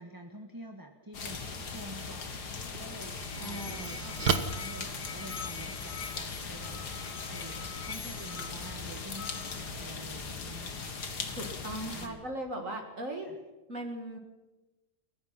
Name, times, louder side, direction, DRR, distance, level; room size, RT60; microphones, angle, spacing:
voice 1, 0.0-6.9 7.3-10.9 11.8-12.2 13.2-13.4, right 1 dB, 15° right, 4 dB, 1.4 m, -48 dB
sound 1, 1.1-12.1, left 4 dB, 85° left, 2.5 m, -39 dB
sound 2, 2.7-5.8, right 7 dB, 80° right, 1.8 m, -34 dB
Musical instrument, 2.9-9.8, left 6 dB, 55° left, 1.4 m, -45 dB
voice 2, 3.4-4.2 11.4-13.3 13.7-14.2, right 1 dB, 50° right, 3 dB, 2.6 m, -38 dB
30.0 x 15.0 x 5.9 m, 1.1 s
omnidirectional pair, 1.7 m